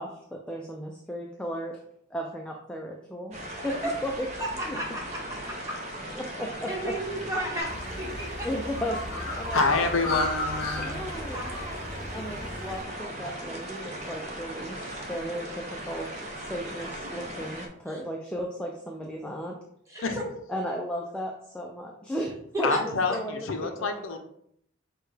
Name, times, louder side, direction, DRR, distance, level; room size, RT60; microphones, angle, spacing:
voice 1, 0.0-1.8 2.1-3.4 3.6-4.3 4.7-4.8 6.1-7.0 8.4-9.9 10.7-11.4 12.1-14.8 15.1-16.1 16.5-19.5 20.5-24.2, equal, 5° left, 0 dB, 0.3 m, -35 dB
sound 1, 3.3-17.7, right 1 dB, 35° right, 0.7 m, -38 dB
voice 2, 4.4-5.8 6.7-8.5 9.5-10.2 11.3-12.3 14.8-15.0 17.9-18.0 19.9-20.0 22.5-22.8, right 1 dB, 15° right, -3 dB, 1.1 m, -34 dB
Bird, 7.6-12.8, left 2 dB, 50° left, 1.7 m, -35 dB
voice 3, 9.5-11.0 20.0-20.2 22.6-24.2, left 3 dB, 70° left, 5 dB, 0.6 m, -27 dB
6.4 x 2.2 x 3.2 m, 0.70 s
head